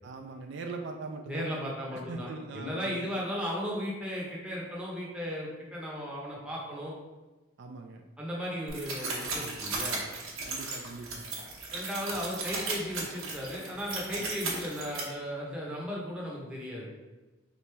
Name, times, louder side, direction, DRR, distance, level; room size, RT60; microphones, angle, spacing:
voice 1, 0.0-3.0 7.6-8.0 10.4-11.3, right 3 dB, 60° right, 3 dB, 0.3 m, -41 dB
voice 2, 1.2-7.0 8.2-10.0 11.7-16.9, equal, 5° right, -4 dB, 0.8 m, -36 dB
sound 1, 8.7-15.0, right 3 dB, 85° right, 0.9 m, -36 dB
3.9 x 3.1 x 3.3 m, 1.2 s
head